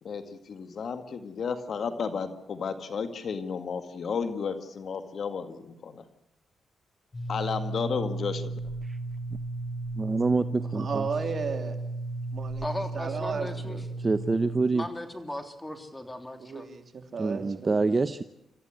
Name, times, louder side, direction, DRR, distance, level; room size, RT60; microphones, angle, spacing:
voice 1, 0.0-6.0 7.3-8.6, left 6 dB, 60° left, 8 dB, 2.0 m, -33 dB
sound 1, 7.1-14.6, right 2 dB, 30° left, 2.2 m, -35 dB
voice 2, 9.9-11.1 14.0-14.9 17.2-18.2, right 3 dB, 30° right, 11 dB, 0.9 m, -26 dB
voice 3, 10.7-11.8 12.3-12.7 12.9-13.8 16.4-18.0, right 5 dB, 50° right, 4 dB, 3.3 m, -34 dB
voice 4, 12.6-13.8 14.7-16.7, left 1 dB, 10° left, 6 dB, 3.3 m, -37 dB
28.0 x 14.0 x 8.1 m, 0.86 s
cardioid pair, 80°, 0 cm